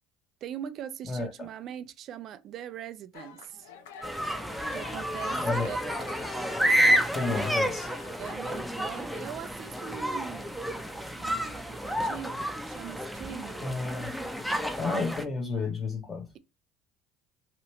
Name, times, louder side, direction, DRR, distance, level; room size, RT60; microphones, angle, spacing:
voice 1, 0.4-3.7 4.7-5.8 7.3-7.4 8.2-10.6 11.1-13.7, right 10 dB, 55° right, 0.4 m, -41 dB
sound 1, 3.1-8.3, left 7 dB, 85° left, 0.5 m, -48 dB
sound 2, 4.0-15.2, equal, ahead, 0.6 m, -30 dB
voice 2, 7.1-7.9 13.6-14.1 14.8-16.3, left 3 dB, 30° left, 0.9 m, -31 dB
2.9 x 2.5 x 3.1 m
supercardioid pair, 85°, 0 cm